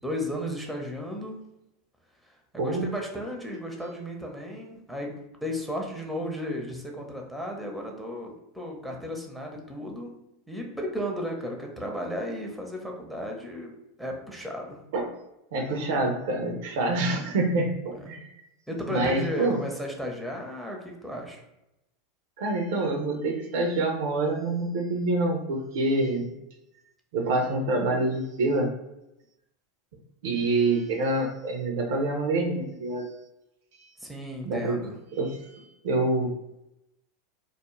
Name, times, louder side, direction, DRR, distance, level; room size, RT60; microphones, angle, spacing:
voice 1, 0.0-1.4 2.5-5.1 5.4-10.1 10.5-13.7 14.0-14.8 18.7-21.4 34.0-34.9, equal, ahead, 0 dB, 0.6 m, -34 dB
voice 2, 2.6-2.9 14.9-15.1 15.5-18.3 18.9-19.6 22.4-26.3 27.1-28.7 30.2-33.0 34.4-34.8 35.1-36.3, right 2 dB, 65° right, 2 dB, 0.5 m, -26 dB
2.3 x 2.1 x 3.0 m, 0.88 s
hypercardioid pair, 85°, 0 cm